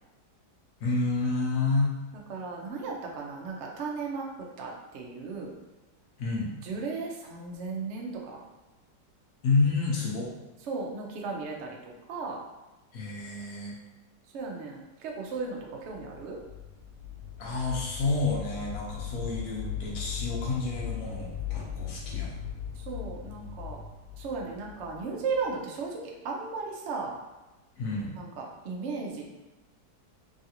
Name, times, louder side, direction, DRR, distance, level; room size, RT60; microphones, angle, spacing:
voice 1, 0.8-1.9 6.2-6.5 9.4-10.3 12.9-13.8 17.4-22.4 27.8-28.1, left 3 dB, 65° left, -3 dB, 0.9 m, -29 dB
voice 2, 2.3-4.3 4.6-5.5 6.6-8.4 10.7-12.4 14.3-16.4 22.8-23.8 24.2-26.0 26.2-27.1 28.2-29.3, right 4 dB, 90° right, -1 dB, 0.6 m, -35 dB
sound 1, 15.7-25.6, left 8 dB, 45° right, 1.1 m, -38 dB
3.1 x 2.5 x 2.8 m, 1.1 s
omnidirectional pair, 1.9 m